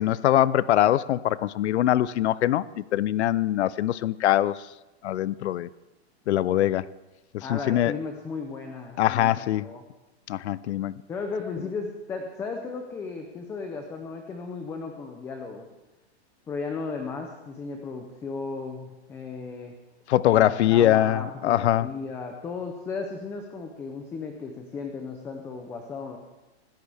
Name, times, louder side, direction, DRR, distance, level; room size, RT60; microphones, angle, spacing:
voice 1, 0.0-4.6 5.0-5.7 6.3-6.9 7.3-7.9 9.0-9.7 10.3-11.0 20.1-21.9, left 13 dB, 85° left, 19 dB, 0.6 m, -23 dB
voice 2, 7.4-9.8 11.1-15.7 16.5-19.7 20.3-26.2, left 4 dB, 10° left, 4 dB, 0.5 m, -35 dB
25.0 x 13.5 x 3.5 m, 1.0 s
supercardioid pair, 170°, 33 cm